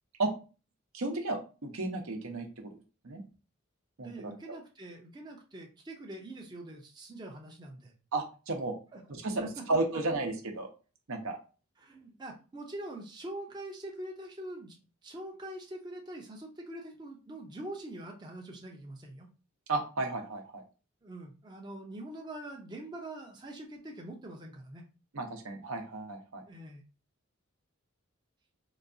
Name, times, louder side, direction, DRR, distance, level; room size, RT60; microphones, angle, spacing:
voice 1, 0.9-2.7 3.0-3.2 4.0-4.6 8.1-8.8 9.1-10.7 11.1-11.4 19.7-20.6 25.1-26.4, right 2 dB, 80° right, 2 dB, 0.7 m, -33 dB
voice 2, 4.0-7.9 8.9-9.0 9.4-9.5 11.8-14.8 15.0-19.3 21.0-24.8 26.5-26.8, right 1 dB, 20° right, 0 dB, 0.4 m, -44 dB
3.9 x 2.3 x 2.5 m, 0.33 s
head